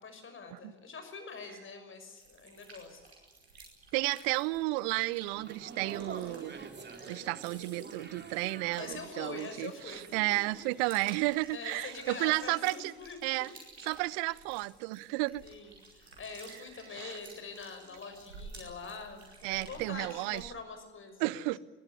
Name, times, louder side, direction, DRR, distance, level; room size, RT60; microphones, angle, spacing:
voice 1, 0.0-3.0 8.8-10.4 10.8-10.9 11.5-13.5 15.4-21.5, left 4 dB, 40° left, 7 dB, 6.0 m, -45 dB
sound 1, 2.2-20.5, right 3 dB, 85° right, 5.1 m, -54 dB
voice 2, 3.9-6.6 7.1-12.9 13.2-13.5 13.9-15.4 17.0-17.2 19.4-20.5 21.2-21.6, right 22 dB, 65° right, 23 dB, 0.8 m, -32 dB
sound 2, 5.3-11.5 11.8-12.1, right 4 dB, 35° right, 3.4 m, -48 dB
21.5 x 19.5 x 9.6 m, 1.3 s
figure-of-eight pair, 45°, 31 cm